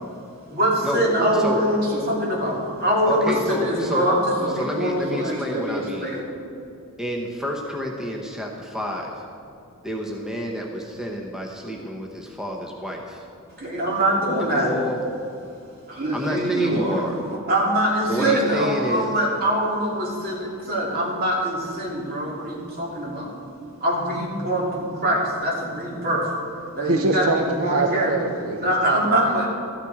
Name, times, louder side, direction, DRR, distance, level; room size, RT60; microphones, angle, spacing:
voice 1, 0.5-6.2 13.6-14.7 15.9-17.0 17.5-23.3 23.8-26.2 26.7-27.3 27.6-28.1 28.6-29.5, right 1 dB, 45° right, -4 dB, 3.1 m, -23 dB
voice 2, 3.0-4.1 4.5-6.1 7.0-9.1 9.8-13.2 14.6-15.0 16.1-17.2 18.1-19.1, equal, 5° right, -1 dB, 1.0 m, -29 dB
voice 3, 26.8-29.5, right 3 dB, 80° right, 5 dB, 0.7 m, -25 dB
13.5 x 10.0 x 4.9 m, 2.5 s
head